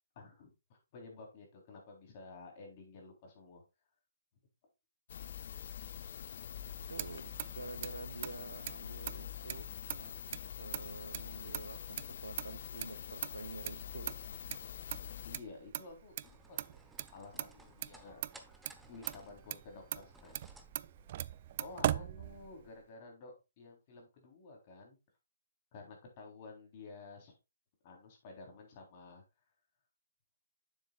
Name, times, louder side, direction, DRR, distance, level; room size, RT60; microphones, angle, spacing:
voice 1, 0.2-3.6 15.3-16.9 17.1-18.2 18.9-20.5 21.6-25.0 25.7-27.3 27.8-29.2, left 3 dB, 40° left, 3.6 m, -52 dB
sound 1, 5.1-15.4, left 9 dB, 55° left, 0.4 m, -45 dB
Motor vehicle (road), 6.6-22.8, right 12 dB, 40° right, 0.4 m, -42 dB
voice 2, 6.9-9.7 10.0-10.2 10.6-14.2, right 3 dB, 80° right, 0.8 m, -48 dB
sound 2, 16.2-22.1, right 1 dB, 5° right, 1.0 m, -60 dB
9.3 x 7.5 x 2.4 m
figure-of-eight pair, 140°, 0 cm